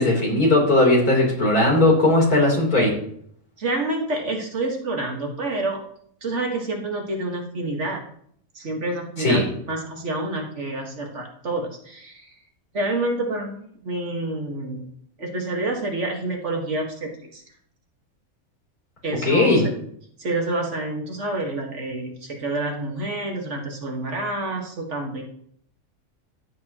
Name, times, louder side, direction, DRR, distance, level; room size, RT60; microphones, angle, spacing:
voice 1, 0.0-2.9 9.2-9.4 19.2-19.7, left 2 dB, 80° left, -2 dB, 4.0 m, -18 dB
voice 2, 3.6-5.8 6.2-8.0 8.6-12.3 12.7-14.8 15.2-17.4 19.0-19.6 20.2-25.2, right 2 dB, 50° right, 1 dB, 1.9 m, -28 dB
15.0 x 8.7 x 3.0 m, 0.65 s
omnidirectional pair, 1.6 m